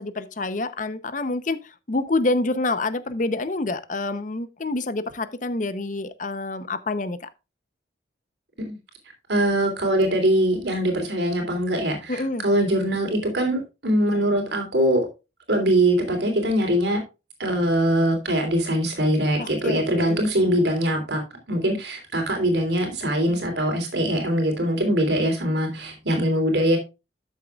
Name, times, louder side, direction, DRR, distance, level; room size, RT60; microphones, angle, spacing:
voice 1, 0.0-7.3 12.1-12.4 19.4-20.3, left 2 dB, 45° left, 0.7 m, -27 dB
voice 2, 9.3-15.0 15.5-17.0 17.4-21.2 21.5-26.8, right 1 dB, 65° right, 3.4 m, -22 dB
13.0 x 7.3 x 2.3 m
head